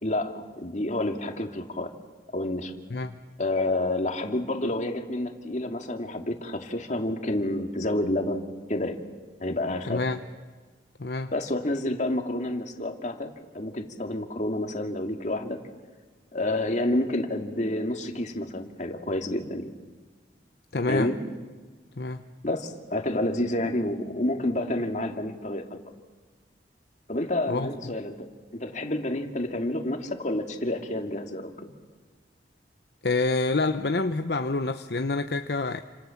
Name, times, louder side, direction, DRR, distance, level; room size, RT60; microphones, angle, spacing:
voice 1, 0.0-1.9 2.3-2.7 3.4-8.4 8.7-9.0 9.4-10.0 11.3-15.6 16.3-19.7 20.9-21.2 22.4-25.8 27.1-28.3 28.5-31.7, left 1 dB, 45° left, 5 dB, 2.5 m, -29 dB
voice 2, 9.9-10.2 11.0-11.3 20.7-21.1 22.0-22.2 27.5-27.7 33.0-35.8, left 3 dB, 65° left, 8 dB, 0.9 m, -27 dB
29.5 x 27.0 x 7.3 m, 1.4 s
head